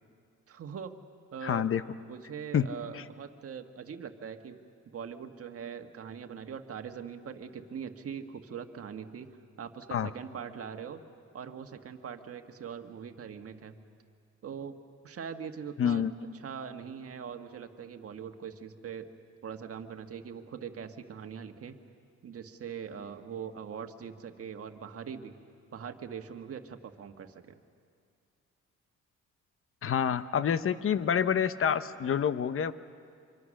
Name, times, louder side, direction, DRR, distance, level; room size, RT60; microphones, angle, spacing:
voice 1, 0.5-0.9 1.3-1.7 2.1-4.6 4.8-9.3 9.6-11.0 11.3-13.8 14.4-14.8 15.0-16.0 16.4-19.1 19.4-21.8 22.2-25.3 25.7-27.6, right 7 dB, 50° right, 6 dB, 1.6 m, -42 dB
voice 2, 1.4-1.8 2.5-2.7 2.9-3.0 9.9-10.1 15.8-16.1 29.8-32.7, left 8 dB, 45° left, 13 dB, 0.9 m, -27 dB
25.0 x 24.5 x 6.5 m, 2.3 s
cardioid pair, 90°, 30 cm